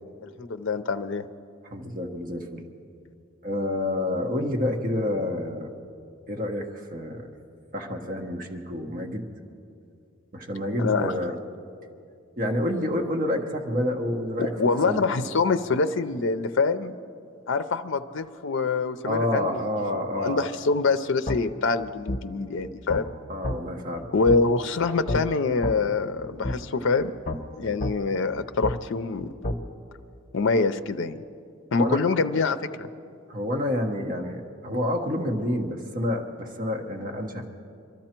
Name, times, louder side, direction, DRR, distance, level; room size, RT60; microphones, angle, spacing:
voice 1, 0.2-1.3 10.8-11.1 14.4-16.9 17.5-19.6 19.9-23.1 24.1-27.2 27.6-29.3 30.3-31.2 31.7-32.9, left 4 dB, 60° left, 10 dB, 0.5 m, -25 dB
voice 2, 1.7-2.7 3.4-5.7 6.3-7.3 7.7-9.3 10.3-11.3 12.4-14.5 14.8-15.2 19.0-20.5 23.3-24.1 31.8-32.1 33.3-37.5, left 1 dB, 40° right, 2 dB, 1.2 m, -28 dB
sound 1, 21.3-21.4 22.1-22.2 22.9-23.0 23.4-23.6 24.3-24.4 25.1-25.2 25.6-25.8 26.4-26.6 27.3-27.4 27.8-28.0 28.6-28.8 29.4-29.6, left 1 dB, 40° left, 0.8 m, -28 dB
23.0 x 13.0 x 4.5 m, 2.4 s
head